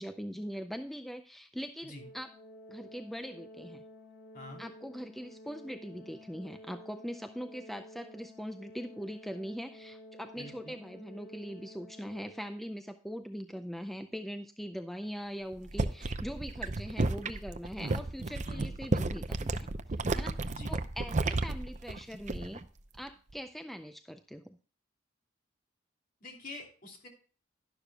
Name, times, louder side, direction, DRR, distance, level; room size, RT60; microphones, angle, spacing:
voice 1, 0.0-2.3 2.7-3.8 4.6-19.7 20.1-22.6 23.0-24.6, equal, ahead, 8 dB, 0.4 m, -41 dB
Organ, 2.0-12.8, left 1 dB, 80° left, 2.2 m, -52 dB
voice 2, 10.3-10.8 18.4-18.7 20.5-20.7 26.2-27.1, left 1 dB, 45° left, 1 dB, 2.9 m, -46 dB
sound 1, 15.5-22.7 23.0-23.3, right 2 dB, 40° right, 0.6 m, -33 dB
11.5 x 11.5 x 2.3 m, 0.40 s
head